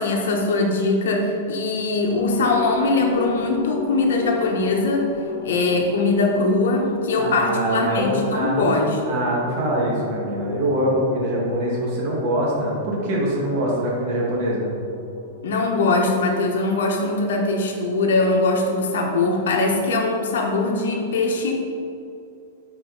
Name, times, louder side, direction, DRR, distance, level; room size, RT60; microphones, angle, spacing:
voice 1, 0.0-5.1 5.4-9.2 15.4-21.7, left 3 dB, 85° left, 1 dB, 1.1 m, -21 dB
sound 1, 2.1-15.9, left 4 dB, 40° left, 1.2 m, -34 dB
voice 2, 7.2-8.8 9.1-14.7, right 1 dB, 40° right, -4 dB, 1.7 m, -23 dB
10.5 x 4.1 x 3.9 m, 2.6 s
supercardioid pair, 170°, 0 cm